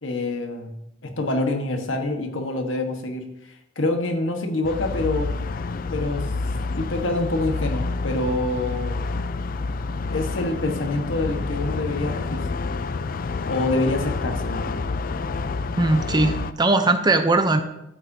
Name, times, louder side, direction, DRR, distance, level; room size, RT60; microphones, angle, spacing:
voice 1, 0.0-5.4 5.9-6.3 6.8-9.0 10.1-12.5 13.5-14.8, left 2 dB, 75° left, 4 dB, 1.4 m, -26 dB
sound 1, 4.6-16.5, left 3 dB, 45° left, 0.4 m, -28 dB
voice 2, 15.8-17.6, right 2 dB, 20° right, 8 dB, 0.6 m, -19 dB
14.0 x 7.6 x 2.8 m, 0.85 s
head